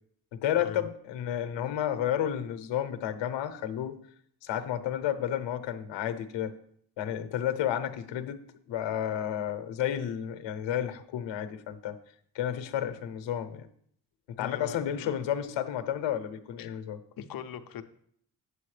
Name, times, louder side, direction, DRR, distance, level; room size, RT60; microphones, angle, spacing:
voice 1, 0.3-4.0 4.4-6.5 7.0-8.4 8.7-12.0 12.3-13.7 14.3-17.0, left 10 dB, 80° left, 9 dB, 0.8 m, -31 dB
voice 2, 14.4-15.1 16.6-16.8 17.2-17.8, left 9 dB, 50° left, 9 dB, 0.6 m, -40 dB
8.4 x 7.9 x 3.3 m, 0.64 s
cardioid pair, 150°, 44 cm